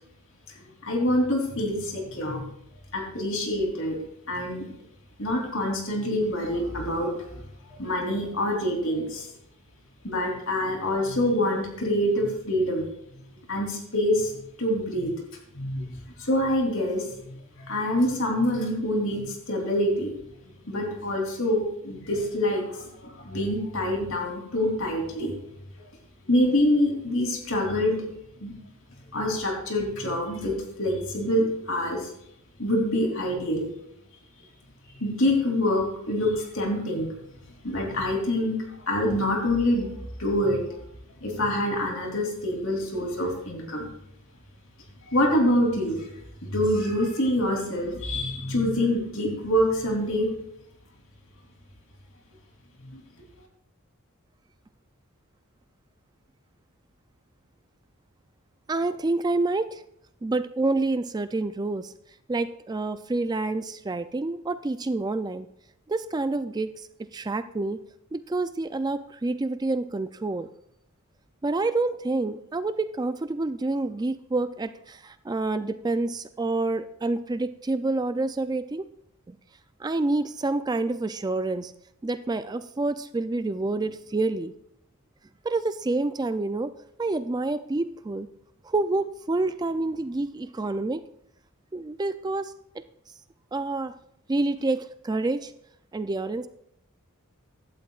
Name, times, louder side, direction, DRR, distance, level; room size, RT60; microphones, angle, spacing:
voice 1, 0.8-2.5 2.9-4.0 4.3-4.7 5.2-7.3 7.8-9.3 10.0-12.9 13.5-14.3 14.6-15.1 15.6-20.1 20.7-25.3 26.3-28.0 28.4-28.5 29.1-30.5 30.8-32.1 32.6-33.7 35.0-37.1 37.6-38.6 38.9-39.9 40.2-40.6 41.2-43.9 45.0-46.0 46.4-50.3 52.9-53.0, left 1 dB, 60° left, 1 dB, 3.3 m, -26 dB
voice 2, 58.7-59.8 60.2-61.9 62.3-65.5 65.9-67.8 68.1-70.5 71.4-78.9 79.3-79.4 79.8-81.7 82.0-84.5 85.4-86.7 87.0-88.3 88.6-91.0 91.7-92.5 93.5-93.9 94.3-95.5 95.9-96.5, right 2 dB, 20° right, 11 dB, 0.3 m, -28 dB
16.0 x 12.0 x 2.4 m, 0.76 s
head